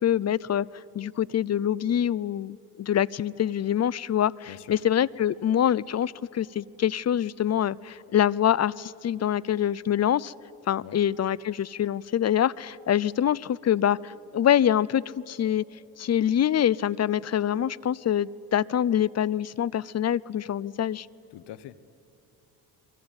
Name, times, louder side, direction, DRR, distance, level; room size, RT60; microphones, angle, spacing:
voice 1, 0.0-0.7 0.9-10.3 10.7-15.6 16.0-21.1, left 10 dB, 40° left, 23 dB, 0.6 m, -25 dB
voice 2, 4.5-4.8 10.8-11.0 21.3-21.8, left 13 dB, 85° left, 17 dB, 1.0 m, -43 dB
29.0 x 23.0 x 8.9 m, 2.8 s
cardioid pair, 85°, 40 cm